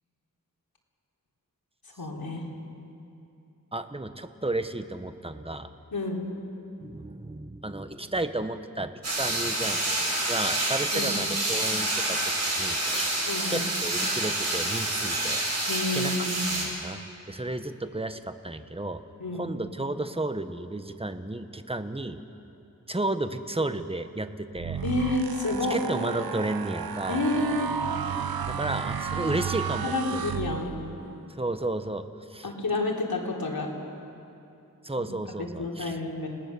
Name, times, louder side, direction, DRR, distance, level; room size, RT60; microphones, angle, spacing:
voice 1, 2.0-2.5 5.9-6.2 10.9-11.2 13.3-13.7 15.7-16.4 19.2-19.5 24.8-25.8 27.1-27.8 29.8-30.8 32.4-33.7 35.0-35.1 35.4-36.3, left 2 dB, 75° left, -1 dB, 3.8 m, -29 dB
voice 2, 3.7-5.7 6.8-12.3 12.6-13.2 13.5-15.4 15.9-16.1 16.5-17.0 17.3-19.0 19.3-22.2 22.9-24.8 25.7-27.2 28.5-30.3 31.3-32.0 32.3-32.5 34.8-36.0, right 2 dB, 15° right, 9 dB, 1.3 m, -32 dB
sound 1, 9.0-16.7, right 2 dB, 45° right, 7.5 m, -28 dB
sound 2, 24.5-31.0, right 7 dB, 75° right, 0.9 m, -33 dB
30.0 x 18.5 x 7.0 m, 2.7 s
wide cardioid pair, 55°, 36 cm